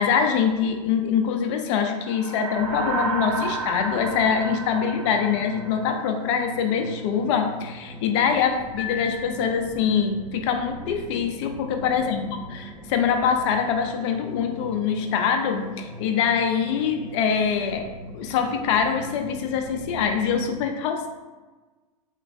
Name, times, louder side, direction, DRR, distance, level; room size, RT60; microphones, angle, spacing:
voice 1, 0.0-17.9 18.1-21.1, left 7 dB, 50° left, 4 dB, 0.5 m, -24 dB
sound 1, 1.9-6.4, right 3 dB, 70° right, 0.4 m, -32 dB
sound 2, 2.6-20.6, equal, 30° right, 1.3 m, -41 dB
Piano, 8.8-10.1, left 9 dB, 5° left, 0.6 m, -37 dB
3.1 x 2.9 x 2.6 m, 1.3 s
hypercardioid pair, 120°, 20 cm